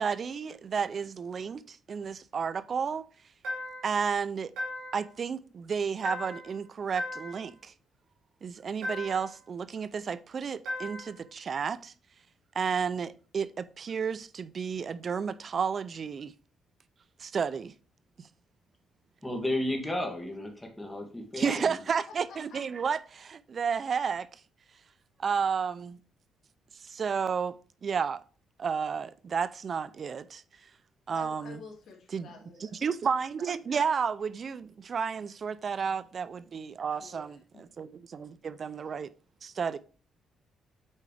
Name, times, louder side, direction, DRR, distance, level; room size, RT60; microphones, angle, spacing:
voice 1, 0.0-3.0 3.8-4.5 4.9-7.7 8.4-11.9 12.5-16.3 17.2-17.7 21.4-24.3 25.2-26.0 26.8-27.6 27.8-28.2 28.6-30.4 31.1-31.6 32.1-32.3 32.6-37.4 37.8-39.1 39.4-39.8, right 6 dB, 45° right, 0.4 m, -32 dB
sound 1, 3.4-4.0 4.6-5.1 6.0-6.6 7.0-7.5 8.8-9.4 10.7-11.2, left 1 dB, 80° right, 2.8 m, -37 dB
voice 2, 19.2-21.8, left 1 dB, 10° left, 2.2 m, -33 dB
voice 3, 21.6-22.0 22.3-22.6 31.1-32.8 36.8-37.2 37.5-37.6, left 4 dB, 70° left, 2.3 m, -49 dB
8.4 x 4.8 x 3.4 m
cardioid pair, 90°, 0 cm